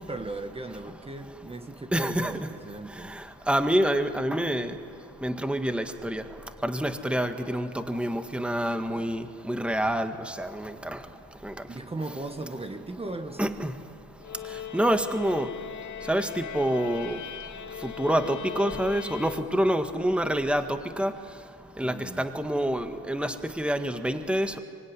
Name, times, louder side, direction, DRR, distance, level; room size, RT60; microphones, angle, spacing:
voice 1, 0.0-3.1 11.7-13.5 21.8-22.2, right 2 dB, 20° right, 1.5 m, -37 dB
voice 2, 1.9-2.3 3.5-4.7 5.2-6.2 6.6-11.0 11.4-11.5 13.4-13.7 14.7-15.5 16.1-17.2 18.0-20.6 21.0-21.1 21.8-24.6, right 1 dB, 5° right, 1.7 m, -27 dB
sound 1, 14.2-19.9, left 9 dB, 80° left, 2.1 m, -39 dB
24.5 x 24.0 x 9.9 m
cardioid pair, 90°, 30 cm